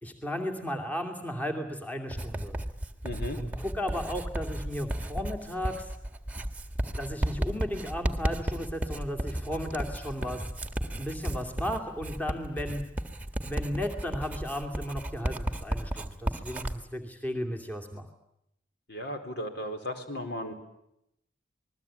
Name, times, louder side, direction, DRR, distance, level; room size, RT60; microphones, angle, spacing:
voice 1, 0.0-2.6 3.4-5.9 7.0-10.4 11.0-12.8 13.4-18.1, equal, 10° left, 4 dB, 2.6 m, -35 dB
Writing, 2.1-16.8, right 1 dB, 10° right, 1.8 m, -34 dB
voice 2, 3.0-3.4 18.9-20.5, left 1 dB, 55° left, 6 dB, 4.4 m, -35 dB
27.5 x 21.0 x 8.8 m, 0.80 s
head